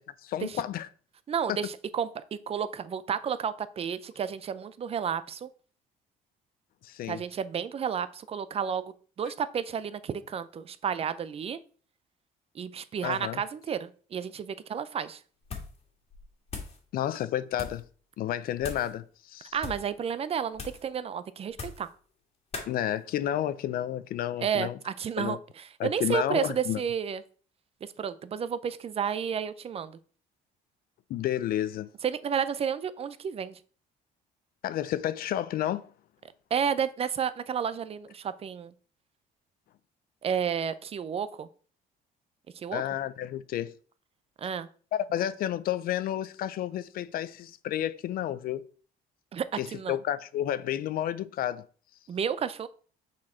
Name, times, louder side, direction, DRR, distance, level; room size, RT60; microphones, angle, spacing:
voice 1, 0.2-0.9 6.8-7.2 13.0-13.4 16.9-17.8 18.2-19.5 22.7-24.8 25.2-25.4 25.8-26.8 31.1-31.9 34.6-35.9 42.7-43.7 44.9-48.6 49.6-51.7, left 12 dB, 60° left, 0.4 m, -31 dB
voice 2, 1.3-5.5 7.1-11.6 12.5-15.2 19.5-21.9 24.4-27.2 27.8-30.0 32.0-33.6 36.5-38.7 40.2-41.5 42.5-42.8 44.4-44.7 49.3-49.5 49.7-50.0 52.1-52.7, right 7 dB, 35° right, 0.5 m, -31 dB
sound 1, 15.4-15.8 16.1-16.8 17.5-17.9 18.6-18.9 19.5-19.9 20.5-20.9 21.5-21.9 22.5-22.7, left 5 dB, 35° left, 1.8 m, -40 dB
6.1 x 4.3 x 4.3 m
cardioid pair, 110°, 17 cm